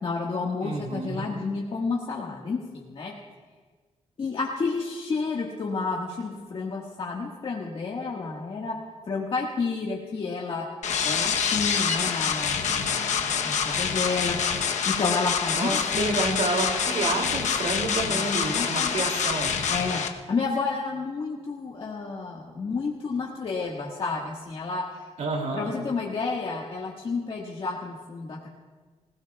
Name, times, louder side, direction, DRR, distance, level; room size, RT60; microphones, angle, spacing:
voice 1, 0.0-3.1 4.2-8.8 9.1-10.6 11.0-16.3 18.1-18.9 19.7-20.0 20.3-25.1 25.5-28.5, left 4 dB, 50° left, -3 dB, 1.6 m, -31 dB
voice 2, 0.6-1.3 15.5-19.6 25.2-25.8, right 2 dB, 75° right, 1 dB, 2.8 m, -29 dB
sound 1, 10.8-20.1, left 7 dB, 85° left, 1.0 m, -26 dB
25.5 x 16.5 x 2.3 m, 1.4 s
wide cardioid pair, 125°, 12 cm